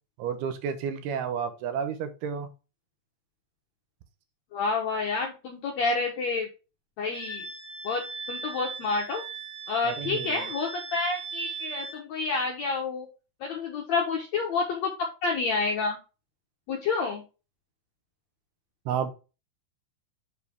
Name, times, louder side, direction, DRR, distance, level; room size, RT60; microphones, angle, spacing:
voice 1, 0.2-2.5 9.8-10.4 18.9-19.1, right 7 dB, 80° right, 8 dB, 2.8 m, -31 dB
voice 2, 4.5-6.5 7.0-7.4 7.8-8.0 8.3-9.2 9.7-13.1 13.4-16.0 16.7-17.2, left 4 dB, 75° left, 0 dB, 1.6 m, -29 dB
Wind instrument woodwind instrument, 7.1-12.0, right 4 dB, 45° right, 2.5 m, -38 dB
6.7 x 5.0 x 3.4 m, 0.31 s
omnidirectional pair, 4.5 m